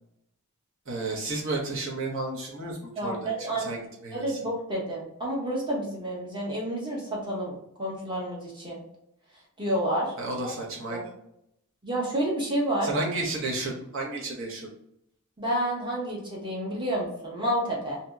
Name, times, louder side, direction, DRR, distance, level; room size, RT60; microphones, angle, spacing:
voice 1, 0.9-3.4 3.6-4.4 10.2-11.1 12.8-14.7, right 2 dB, 60° right, -2 dB, 0.9 m, -32 dB
voice 2, 3.0-3.7 4.1-7.5 7.8-8.8 9.6-10.1 10.9-11.1 11.8-12.9 15.4-18.0, right 1 dB, 20° right, -3 dB, 0.9 m, -29 dB
2.8 x 2.7 x 2.3 m, 0.77 s
head